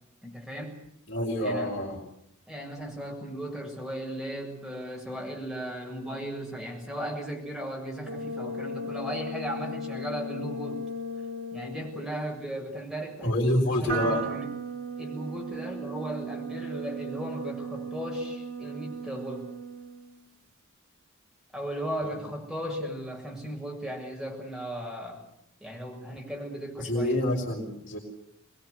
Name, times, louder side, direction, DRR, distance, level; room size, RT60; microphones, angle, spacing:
voice 1, 0.2-0.8 1.4-1.7 2.5-10.8 11.5-13.3 13.5-14.5 15.0-19.5 21.5-25.2 25.6-27.2, equal, ahead, -1 dB, 7.2 m, -36 dB
voice 2, 1.1-2.0 13.2-14.2 22.0-22.2 26.8-28.0, left 1 dB, 60° left, -3 dB, 4.9 m, -27 dB
sound 1, 8.1-12.2 13.9-20.2, right 1 dB, 85° right, 2.6 m, -36 dB
25.0 x 21.5 x 8.1 m, 0.76 s
head